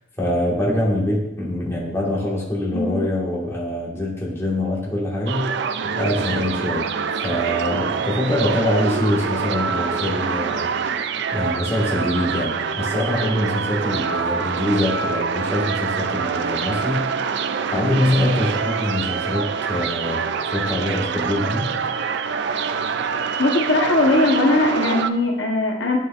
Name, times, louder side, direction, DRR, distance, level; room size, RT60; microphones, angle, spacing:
voice 1, 0.2-5.5 5.8-6.9 7.2-10.7 11.3-17.1 17.7-20.2 20.5-21.7, left 1 dB, 15° left, -5 dB, 1.6 m, -24 dB
sound 1, 5.3-25.1, right 6 dB, 65° right, 0.4 m, -25 dB
voice 2, 23.4-26.0, left 2 dB, 70° left, 0 dB, 1.0 m, -19 dB
11.0 x 4.6 x 2.5 m, 0.87 s
head